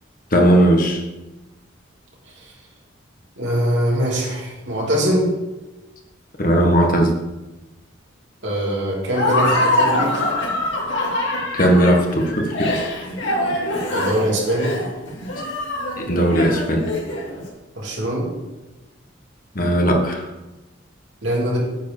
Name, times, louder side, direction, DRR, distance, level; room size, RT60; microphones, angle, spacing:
voice 1, 0.3-1.0 6.4-7.1 11.5-12.8 16.0-16.8 19.5-20.2, right 1 dB, 45° left, 2 dB, 1.3 m, -17 dB
voice 2, 3.4-5.3 8.4-10.2 13.9-14.7 17.7-18.3 21.2-21.6, equal, 65° right, -3 dB, 2.7 m, -22 dB
Laughter, 9.1-17.4, left 1 dB, 65° left, 2.7 m, -23 dB
9.2 x 4.6 x 7.1 m, 1.1 s
head